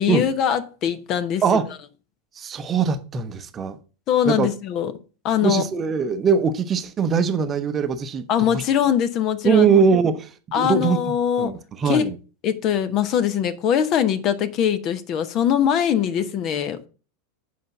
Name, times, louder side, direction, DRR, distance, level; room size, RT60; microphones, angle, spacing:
voice 1, 0.0-1.4 4.1-4.9 5.2-5.6 8.3-9.7 10.5-11.5 11.8-12.0 12.4-16.8, left 9 dB, 40° left, 0.9 m, -22 dB
voice 2, 2.4-3.8 4.2-4.5 5.4-8.6 9.4-11.0 11.4-12.2, right 6 dB, 25° right, 0.8 m, -21 dB
7.8 x 5.2 x 5.9 m
figure-of-eight pair, 85°, 0 cm